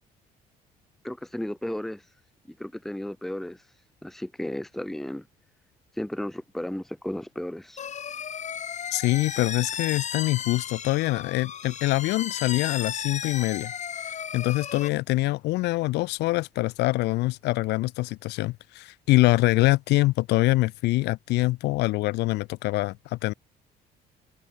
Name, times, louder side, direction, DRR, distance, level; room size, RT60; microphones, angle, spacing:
voice 1, 1.0-2.0 2.5-3.6 4.0-5.3 6.0-7.8, left 1 dB, ahead, 0.9 m, -34 dB
sound 1, 7.8-14.9, left 8 dB, 45° left, 4.0 m, -35 dB
voice 2, 8.9-13.7 14.3-23.3, left 19 dB, 85° left, 1.6 m, -24 dB
cardioid pair, 110°, 17 cm